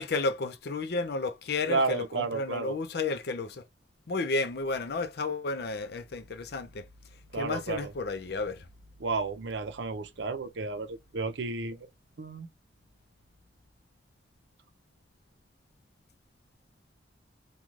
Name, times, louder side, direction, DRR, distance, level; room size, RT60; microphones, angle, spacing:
voice 1, 0.0-3.6 4.1-6.8 7.3-8.6, left 3 dB, 60° left, 0.5 m, -32 dB
voice 2, 1.7-2.8 7.3-7.9 9.0-11.9 12.2-12.5, right 3 dB, 80° right, 0.6 m, -32 dB
3.1 x 2.3 x 2.4 m
head